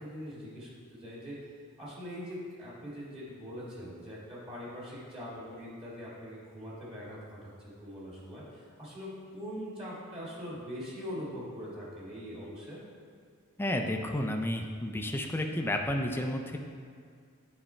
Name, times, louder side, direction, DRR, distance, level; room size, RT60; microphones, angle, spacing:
voice 1, 0.0-1.5 1.8-12.8, equal, 25° right, -6 dB, 2.0 m, -42 dB
voice 2, 13.6-16.6, left 1 dB, 10° left, 3 dB, 0.5 m, -31 dB
10.0 x 4.2 x 4.4 m, 2.2 s
head